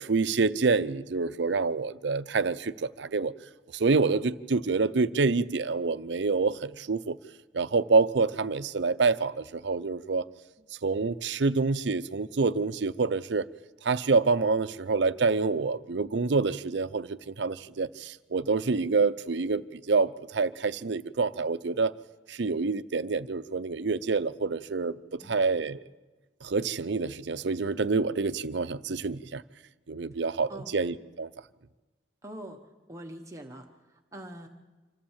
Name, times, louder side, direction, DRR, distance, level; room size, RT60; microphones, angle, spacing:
voice 1, 0.0-3.3 3.7-7.2 7.5-10.3 10.8-13.5 13.8-21.9 22.3-25.8 26.4-29.4 29.9-31.3, right 4 dB, 75° right, 0.6 m, -27 dB
voice 2, 32.2-32.6 32.9-34.5, right 1 dB, 15° right, 1.0 m, -43 dB
26.0 x 14.5 x 7.3 m
head